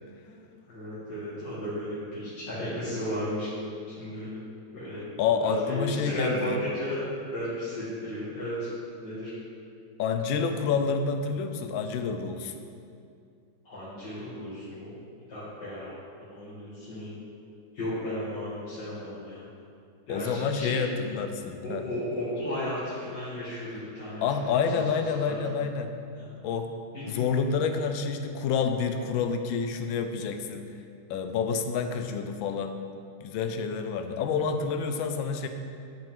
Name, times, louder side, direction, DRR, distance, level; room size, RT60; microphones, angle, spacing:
voice 1, 0.7-3.5 3.9-4.3 4.7-5.0 5.4-7.0 7.3-8.7 9.0-9.3 13.7-14.9 15.3-16.0 16.3-17.2 17.7-19.5 20.1-20.9 21.6-24.2 24.7-24.8 25.3-25.4 26.2-26.5 26.9-27.2, equal, 70° left, -12 dB, 2.3 m, -34 dB
voice 2, 5.2-6.6 10.0-12.5 20.1-21.8 24.2-25.9 26.4-26.7 27.1-30.7 31.1-32.8 33.2-35.5, left 6 dB, 85° left, 7 dB, 1.3 m, -28 dB
10.5 x 5.2 x 3.5 m, 2.4 s
omnidirectional pair, 2.1 m